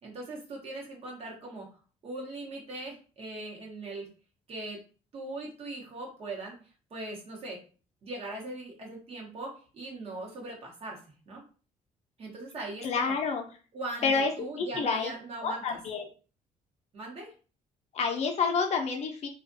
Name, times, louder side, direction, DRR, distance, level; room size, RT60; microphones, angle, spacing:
voice 1, 0.0-1.8 2.0-4.1 4.5-4.8 5.1-6.6 6.9-7.6 8.0-11.0 11.3-11.4 12.2-13.1 13.7-15.8 16.9-17.3, right 2 dB, 45° right, -2 dB, 1.0 m, -40 dB
voice 2, 12.8-13.4 14.0-15.1 15.4-16.1 17.9-19.3, left 5 dB, 50° left, 4 dB, 0.5 m, -29 dB
2.4 x 2.3 x 2.6 m, 0.37 s
cardioid pair, 125°, 14 cm